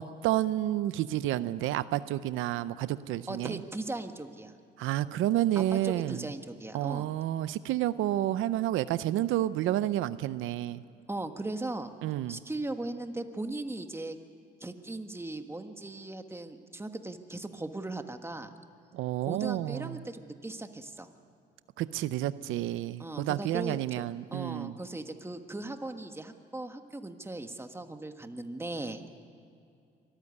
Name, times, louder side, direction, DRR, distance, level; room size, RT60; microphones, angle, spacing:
voice 1, 0.0-3.6 4.8-6.3 6.7-10.8 12.0-12.4 18.9-20.0 21.8-24.7, right 13 dB, 90° right, 15 dB, 0.6 m, -30 dB
voice 2, 3.3-4.5 5.5-7.1 11.1-11.9 12.3-14.2 14.6-18.5 19.2-21.1 23.0-23.8 24.3-29.0, right 2 dB, 10° right, 7 dB, 1.5 m, -38 dB
24.5 x 14.0 x 9.7 m, 2.5 s
cardioid pair, 90°, 20 cm